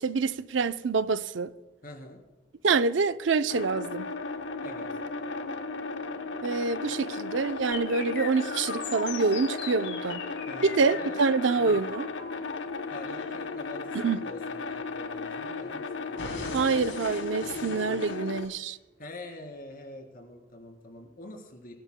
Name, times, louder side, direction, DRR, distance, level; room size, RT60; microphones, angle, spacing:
voice 1, 0.0-1.5 2.6-4.1 6.4-10.2 10.8-12.1 14.0-14.2 16.5-18.8, right 4 dB, 85° right, 0.6 m, -26 dB
voice 2, 1.8-2.2 4.6-4.9 6.8-6.9 10.5-11.8 12.9-16.3 17.6-18.1 19.0-21.7, left 1 dB, 50° left, 3.3 m, -45 dB
sound 1, 3.5-18.5, left 4 dB, 70° left, 0.8 m, -35 dB
sound 2, 7.7-15.7 16.2-18.7, left 4 dB, 90° left, 3.3 m, -41 dB
23.5 x 14.5 x 2.2 m
head